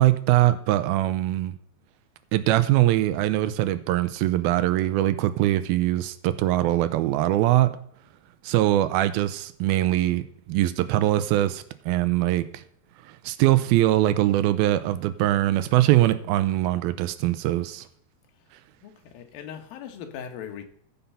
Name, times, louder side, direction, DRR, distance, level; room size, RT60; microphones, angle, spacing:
voice 1, 0.0-1.6 2.3-7.7 8.4-12.6 13.0-17.9, right 14 dB, 80° right, 2.3 m, -22 dB
voice 2, 18.8-20.7, left 8 dB, 70° left, 2.8 m, -39 dB
14.5 x 5.8 x 5.5 m
omnidirectional pair, 4.6 m